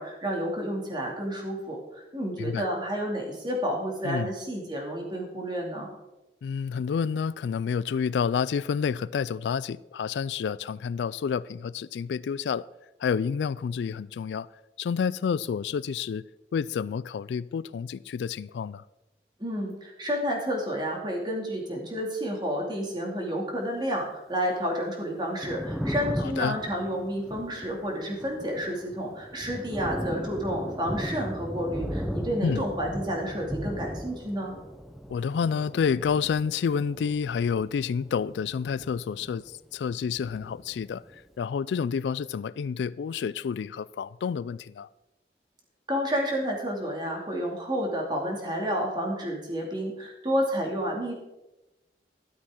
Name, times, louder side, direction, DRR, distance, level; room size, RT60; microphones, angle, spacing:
voice 1, 0.0-5.9 19.4-34.6 45.9-51.1, equal, 25° right, 2.4 m, -30 dB
voice 2, 6.4-12.7 13.0-14.5 14.8-16.2 16.5-18.8 26.2-26.6 32.4-32.6 35.1-39.4 39.7-41.0 41.4-44.9, left 6 dB, 80° left, 0.3 m, -29 dB
Thunder, 25.2-39.6 39.9-41.2, equal, ahead, 0.7 m, -37 dB
12.5 x 12.5 x 3.7 m
head